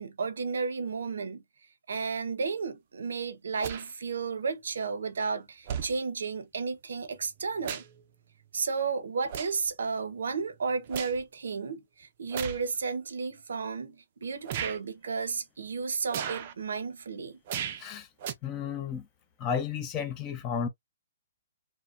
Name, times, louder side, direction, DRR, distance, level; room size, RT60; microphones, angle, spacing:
voice 1, 0.0-1.4 1.9-7.8 8.5-17.4, right 5 dB, 80° right, 0.7 m, -33 dB
sound 1, 3.6-3.9 4.9-5.0 5.7-5.9 7.2-8.0 8.4-8.6 9.3-9.7 10.1-11.2 12.3-12.6 13.4-13.5 14.4-14.8 16.1-16.5 17.5-17.9 18.2-18.3, right 8 dB, 40° right, 0.4 m, -36 dB
voice 2, 18.4-19.1 19.4-20.7, left 7 dB, 20° left, 0.4 m, -32 dB
3.0 x 2.0 x 2.4 m
hypercardioid pair, 165°, 0 cm